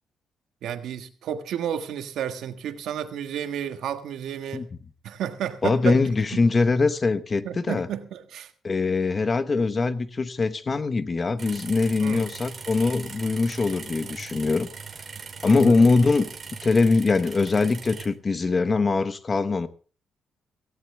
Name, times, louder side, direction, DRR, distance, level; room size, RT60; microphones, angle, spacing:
voice 1, 0.6-4.7 5.0-6.0 7.4-8.5 12.0-12.3 15.5-15.8, right 9 dB, 85° right, 1.6 m, -32 dB
voice 2, 5.6-7.9 8.6-14.7 15.4-16.3 16.6-19.7, left 3 dB, 30° left, 1.1 m, -22 dB
sound 1, 11.4-18.1, right 5 dB, 35° right, 2.9 m, -40 dB
17.0 x 16.5 x 3.4 m
cardioid pair, 125°, 0 cm